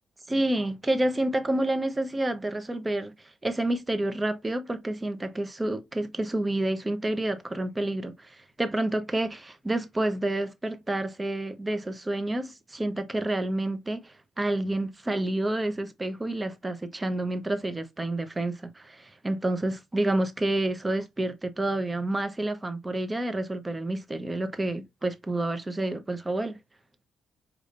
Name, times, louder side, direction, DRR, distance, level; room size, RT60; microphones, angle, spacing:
voice 1, 0.3-3.1 3.4-26.6, right 1 dB, 20° right, 0.8 m, -29 dB
5.0 x 3.1 x 2.5 m
cardioid pair, 90°, 0 cm